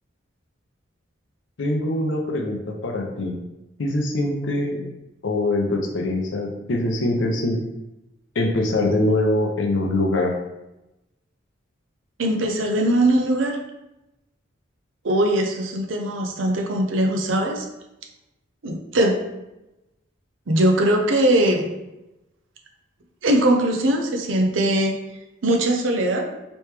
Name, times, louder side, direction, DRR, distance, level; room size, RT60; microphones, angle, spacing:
voice 1, 1.6-3.3 3.8-4.8 5.2-7.6 8.4-10.3, left 1 dB, 75° left, 2 dB, 0.6 m, -23 dB
voice 2, 12.2-13.6 15.0-17.7 18.6-19.2 20.5-21.7 23.2-25.0 25.4-26.3, right 1 dB, 80° right, 3 dB, 0.6 m, -20 dB
3.1 x 3.0 x 3.3 m, 0.95 s
head